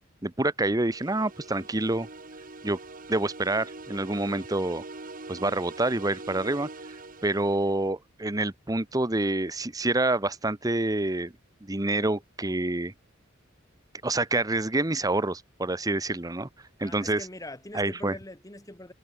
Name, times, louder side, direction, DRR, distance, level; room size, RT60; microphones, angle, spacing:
voice 1, 0.2-2.1 2.6-2.8 3.1-4.8 5.3-6.7 7.2-11.3 11.6-12.9 14.0-16.5 16.8-17.2 17.7-18.2, right 2 dB, 20° right, 1.0 m, -27 dB
sound 1, 0.9-7.9, right 3 dB, 45° right, 2.1 m, -43 dB
voice 2, 16.8-18.9, left 1 dB, 15° left, 2.9 m, -43 dB
head